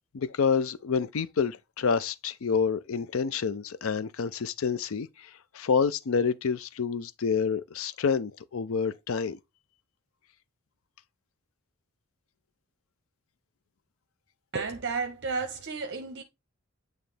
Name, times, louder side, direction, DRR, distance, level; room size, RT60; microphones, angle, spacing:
voice 1, 0.1-9.4, left 5 dB, 65° left, 0.5 m, -28 dB
voice 2, 14.5-16.2, right 4 dB, 50° right, 0.7 m, -32 dB
9.0 x 3.1 x 3.3 m
head